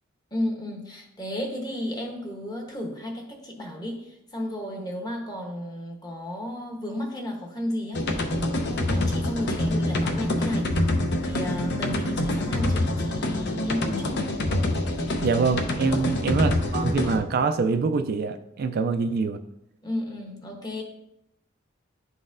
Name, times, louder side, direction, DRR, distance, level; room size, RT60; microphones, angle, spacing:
voice 1, 0.3-10.8 11.2-14.3 15.9-16.3 18.8-19.0 19.8-20.8, left 1 dB, 20° left, 1 dB, 1.0 m, -33 dB
sound 1, 7.9-17.2, left 1 dB, 55° left, 0.7 m, -26 dB
voice 2, 15.2-19.4, right 4 dB, 50° right, 8 dB, 0.3 m, -25 dB
10.5 x 3.9 x 2.5 m, 0.83 s
head